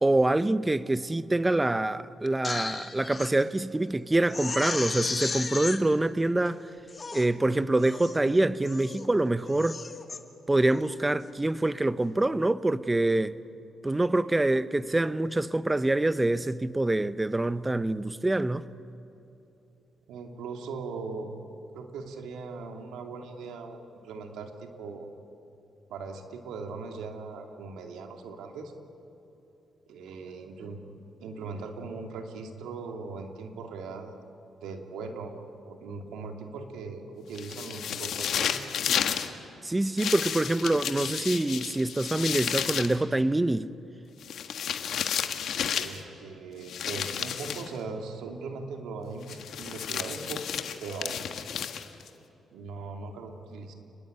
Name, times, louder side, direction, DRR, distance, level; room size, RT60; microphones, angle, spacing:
voice 1, 0.0-6.6 7.1-9.8 10.5-13.3 13.8-18.7 39.6-43.7, right 2 dB, 20° right, 1.0 m, -25 dB
Crying sobbing, 2.3-3.3 3.8-3.9 4.3-5.8 6.5-6.6 6.9-7.3 7.8-8.2 8.6-9.1 9.4-10.2 10.7-11.0, left 4 dB, 40° left, 2.1 m, -35 dB
voice 2, 20.1-21.3 21.7-25.1 25.9-28.7 29.9-30.8 31.2-34.2 34.6-35.3 35.6-38.7 45.7-50.4 50.8-51.2 52.5-53.7, right 4 dB, 85° right, 2.7 m, -39 dB
sound 1, 37.4-39.3 40.0-43.0 44.2-46.0 46.7-47.7 49.3-52.1, left 8 dB, 75° left, 1.5 m, -32 dB
29.5 x 21.0 x 9.3 m
supercardioid pair, 65°, 0 cm